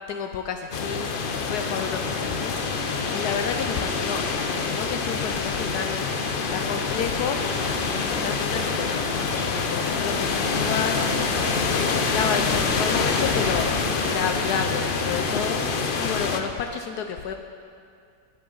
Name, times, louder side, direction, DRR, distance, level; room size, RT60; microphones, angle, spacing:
voice 1, 0.1-1.2 1.5-2.5 3.1-6.0 6.5-7.4 7.9-9.1 9.5-11.0 11.5-13.7 14.0-15.6 16.0-17.3, left 7 dB, 75° left, 5 dB, 1.1 m, -30 dB
sound 1, 0.7-16.4, left 4 dB, 60° left, 0.5 m, -26 dB
18.5 x 7.7 x 3.9 m, 2.3 s
omnidirectional pair, 1.8 m